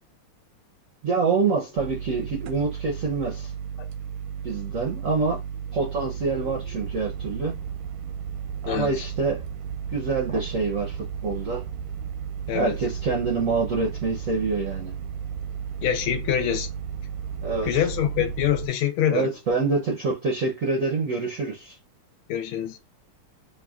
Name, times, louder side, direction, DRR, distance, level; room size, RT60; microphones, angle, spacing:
voice 1, 1.0-3.5 4.4-5.4 5.7-7.5 8.6-9.4 9.9-11.6 12.5-14.9 17.4-17.7 19.1-21.8, right 4 dB, 70° right, 0.8 m, -26 dB
sound 1, 1.8-18.7, right 7 dB, 85° right, 1.6 m, -34 dB
voice 2, 8.6-9.1 12.5-12.8 15.8-16.7 17.7-19.3 22.3-22.8, left 10 dB, 75° left, 1.5 m, -25 dB
6.9 x 2.4 x 2.4 m
omnidirectional pair, 2.4 m